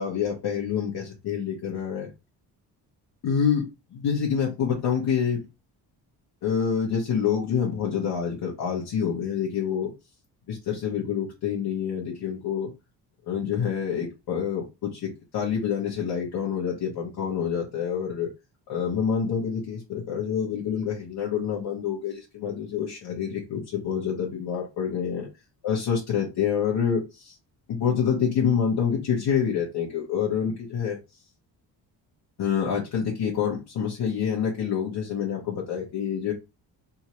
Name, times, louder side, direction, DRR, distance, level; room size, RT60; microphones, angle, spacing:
voice 1, 0.0-2.1 3.2-3.7 3.9-5.4 6.4-9.9 10.5-12.7 13.3-18.3 18.7-25.3 25.6-27.3 27.7-31.0 32.4-36.3, left 7 dB, 70° left, 1.3 m, -27 dB
3.6 x 2.9 x 3.0 m
cardioid pair, 120°, 40 cm